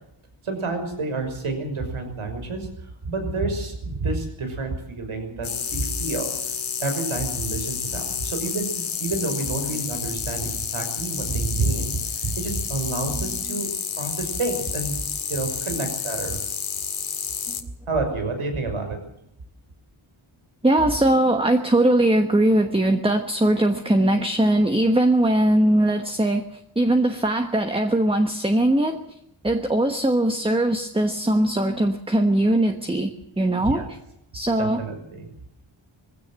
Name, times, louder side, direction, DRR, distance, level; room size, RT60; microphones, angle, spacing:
voice 1, 0.4-6.3 6.8-8.7 9.0-13.7 14.0-16.4 17.9-19.0 33.6-33.9 34.6-35.3, right 3 dB, 85° right, 5 dB, 6.1 m, -29 dB
sound 1, 5.4-17.6, left 6 dB, 70° left, 2.2 m, -30 dB
voice 2, 20.6-29.0 29.4-34.0 34.3-34.8, right 1 dB, 10° right, 6 dB, 1.2 m, -20 dB
21.5 x 16.5 x 7.6 m, 0.80 s
wide cardioid pair, 160°, 49 cm